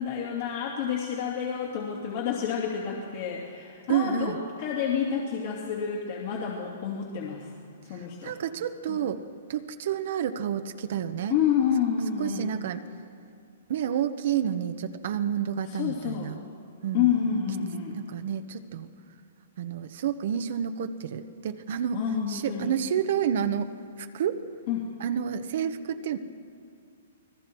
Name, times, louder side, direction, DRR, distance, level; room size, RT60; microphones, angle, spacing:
voice 1, 0.0-7.5 7.8-8.3 8.9-9.0 11.3-12.5 15.6-16.4 16.9-18.0 21.9-22.7 24.7-24.9, left 8 dB, 50° left, -3 dB, 3.0 m, -29 dB
voice 2, 3.9-4.4 8.2-9.2 9.5-11.4 12.2-12.8 13.7-16.4 16.8-17.1 18.0-18.9 19.6-22.0 22.3-23.7 24.0-24.4 25.0-26.2, right 9 dB, 60° right, 9 dB, 1.1 m, -29 dB
28.5 x 20.0 x 4.7 m, 2.4 s
hypercardioid pair, 145°, 0 cm